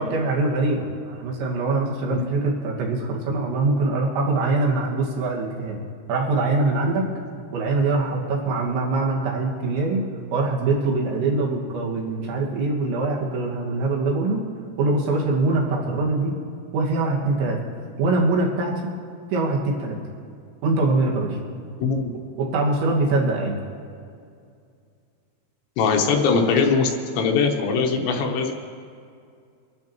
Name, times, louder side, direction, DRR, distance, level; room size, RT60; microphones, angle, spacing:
voice 1, 0.0-5.8 6.1-7.1 7.5-10.0 10.3-14.4 14.8-16.4 16.7-17.6 18.0-18.9 19.3-20.0 20.6-21.4 22.4-23.6, right 3 dB, 75° right, -2 dB, 3.9 m, -23 dB
voice 2, 25.8-28.5, left 5 dB, 80° left, 2 dB, 3.1 m, -21 dB
25.5 x 12.0 x 3.0 m, 2.3 s
omnidirectional pair, 5.5 m